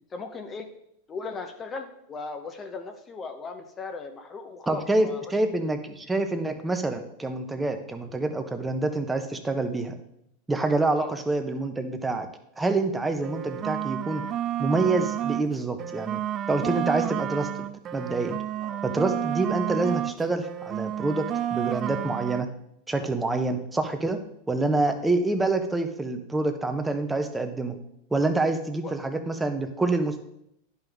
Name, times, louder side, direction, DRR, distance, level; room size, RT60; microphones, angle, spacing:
voice 1, 0.1-0.7 1.1-5.2 10.9-11.1 18.6-18.8 28.8-28.9, left 4 dB, 25° left, 6 dB, 0.9 m, -37 dB
voice 2, 4.7-9.9 10.5-12.3 12.6-14.2 14.6-16.2 16.5-17.7 17.9-18.4 18.8-22.5 22.9-24.2 24.5-27.8 28.1-30.2, right 2 dB, 10° right, 6 dB, 1.0 m, -27 dB
sound 1, 13.1-15.5 15.8-20.2 20.4-22.4, right 11 dB, 35° right, 0.4 m, -30 dB
10.5 x 5.5 x 3.6 m, 0.78 s
hypercardioid pair, 105°, 0 cm